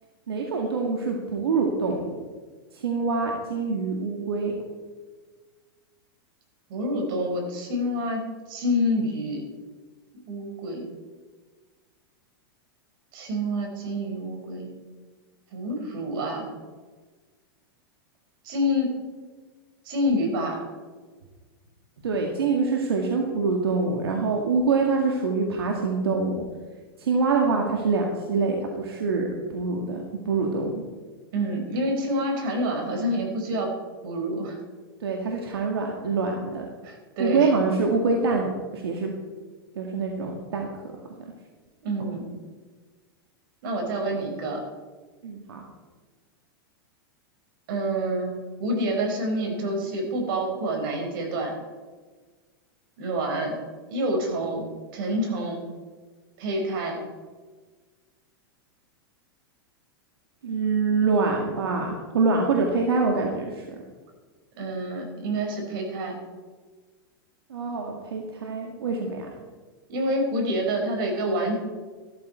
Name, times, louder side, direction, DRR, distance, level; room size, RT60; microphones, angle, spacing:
voice 1, 0.3-2.1 2.7-4.6 22.0-26.5 27.0-30.8 35.0-36.7 37.2-39.1 39.8-40.7 45.2-45.6 60.4-63.6 67.5-69.3, right 4 dB, 90° right, 1 dB, 2.0 m, -25 dB
voice 2, 6.7-9.4 10.3-10.8 13.1-14.7 15.5-16.5 18.4-18.9 19.8-20.6 31.3-33.7 34.0-34.6 36.8-37.5 41.8-42.2 43.6-44.6 47.7-48.3 48.6-51.5 53.0-53.6 53.9-54.7 54.9-55.6 56.4-57.0 64.6-66.1 69.9-71.5, equal, 60° right, 2 dB, 4.9 m, -27 dB
14.5 x 13.0 x 4.4 m, 1.4 s
hypercardioid pair, 125°, 12 cm